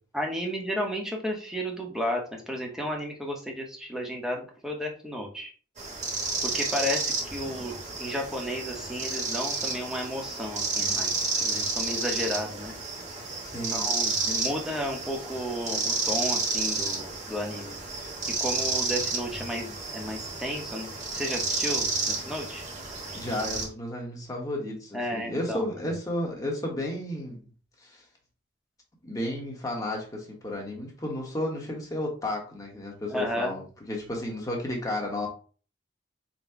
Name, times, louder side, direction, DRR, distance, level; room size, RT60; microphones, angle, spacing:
voice 1, 0.1-5.5 6.5-11.1 11.4-12.7 13.7-17.8 18.4-22.7 24.9-25.6 33.1-33.6, equal, 5° right, 0 dB, 0.9 m, -33 dB
sound 1, 5.8-23.7, right 3 dB, 40° right, 1.1 m, -31 dB
voice 2, 13.4-13.9 23.1-27.4 27.8-28.0 29.0-35.3, left 1 dB, 20° left, -1 dB, 1.1 m, -33 dB
4.0 x 2.2 x 4.5 m, 0.39 s
head